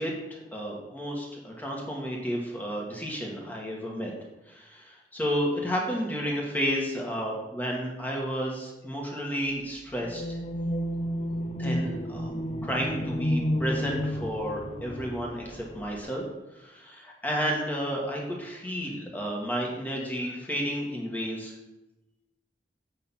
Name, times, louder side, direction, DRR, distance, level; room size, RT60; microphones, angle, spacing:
voice 1, 0.0-4.1 4.5-10.4 11.6-12.3 12.6-16.2 16.5-21.6, equal, 10° left, -2 dB, 1.8 m, -32 dB
sound 1, 10.0-16.0, equal, 35° left, 0.5 m, -31 dB
8.0 x 6.7 x 5.7 m, 0.99 s
head